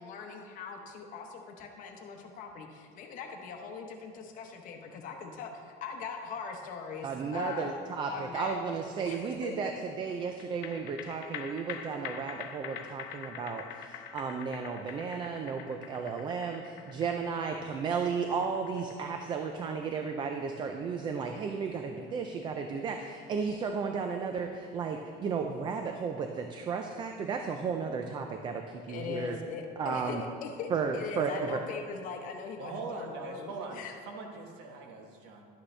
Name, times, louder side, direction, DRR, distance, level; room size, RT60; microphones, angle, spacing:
voice 1, 0.0-7.7 8.1-8.6 9.1-9.2 9.4-9.5 28.9-33.9, left 5 dB, 45° left, 3 dB, 0.9 m, -41 dB
voice 2, 7.0-29.4 29.8-30.2 30.7-31.6, right 5 dB, 25° right, 5 dB, 0.4 m, -34 dB
sound 1, 10.4-23.1 23.4-23.5, left 8 dB, 80° left, 0.8 m, -46 dB
voice 3, 32.6-35.5, right 3 dB, 65° right, 2 dB, 1.5 m, -41 dB
11.5 x 8.5 x 3.3 m, 2.1 s
cardioid pair, 175°, 19 cm